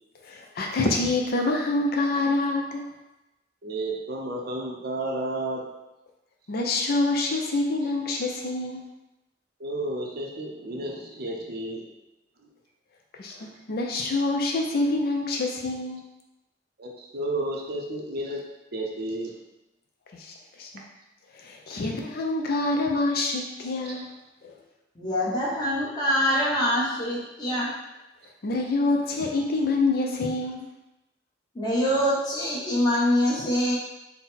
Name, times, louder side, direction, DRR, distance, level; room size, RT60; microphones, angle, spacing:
voice 1, 0.2-2.9 6.5-8.8 13.2-16.0 20.1-20.7 21.3-24.1 24.4-24.6 28.4-30.7, left 2 dB, 55° left, 1 dB, 0.5 m, -26 dB
voice 2, 3.6-5.6 9.6-11.9 13.4-13.5 16.8-18.4 18.7-19.3 23.8-24.0, right 1 dB, 55° right, 0 dB, 0.6 m, -32 dB
voice 3, 25.0-27.7 31.5-33.8, equal, 25° left, -6 dB, 1.1 m, -24 dB
4.0 x 2.1 x 4.1 m, 0.97 s
head